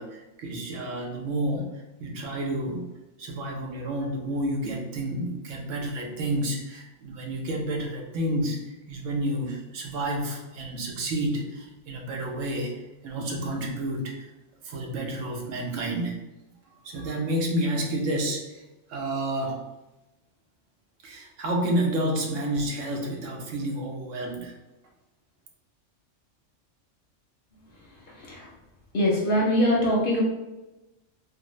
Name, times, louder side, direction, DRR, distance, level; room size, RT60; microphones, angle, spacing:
voice 1, 0.0-1.7 2.0-2.9 3.2-8.6 8.9-14.3 14.6-16.1 16.8-18.6 18.9-19.6 21.0-24.5, right 1 dB, 85° right, 1 dB, 1.0 m, -30 dB
voice 2, 28.9-30.2, equal, 55° left, -3 dB, 0.7 m, -23 dB
3.4 x 2.0 x 3.0 m, 1.0 s
omnidirectional pair, 1.3 m